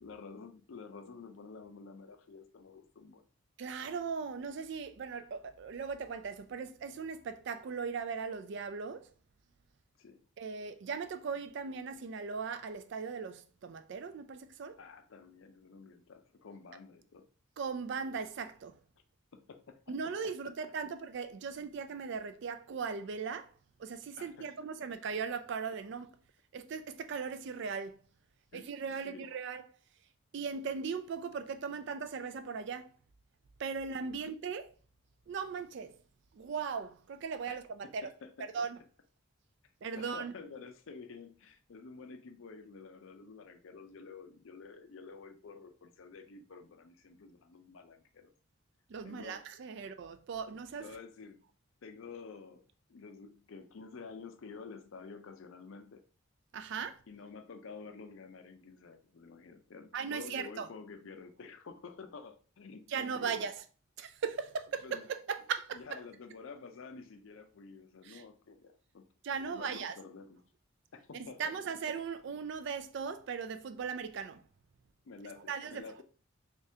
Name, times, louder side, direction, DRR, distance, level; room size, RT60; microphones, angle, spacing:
voice 1, 0.0-3.2 10.0-10.2 14.8-17.3 19.3-19.8 24.2-24.5 28.5-28.6 29.0-29.3 37.5-37.6 37.8-38.5 39.9-48.3 49.0-49.4 50.8-51.4 51.8-52.6 52.9-56.0 57.1-63.5 64.8-65.0 65.7-69.0 69.4-70.4 70.9-71.4 75.0-76.0, left 4 dB, 65° left, 0.5 m, -50 dB
voice 2, 3.6-9.1 10.4-14.8 17.6-18.7 19.9-23.5 23.8-26.1 26.5-28.0 28.5-29.7 30.3-32.9 33.6-34.7 35.3-36.0 36.3-38.1 38.5-38.8 39.8-40.3 48.9-50.9 56.5-57.0 59.9-60.7 62.9-63.6 64.0-65.8 68.0-68.2 69.2-69.9 71.1-74.4 75.5-76.0, right 5 dB, 55° right, 0.3 m, -38 dB
3.4 x 3.4 x 2.7 m
head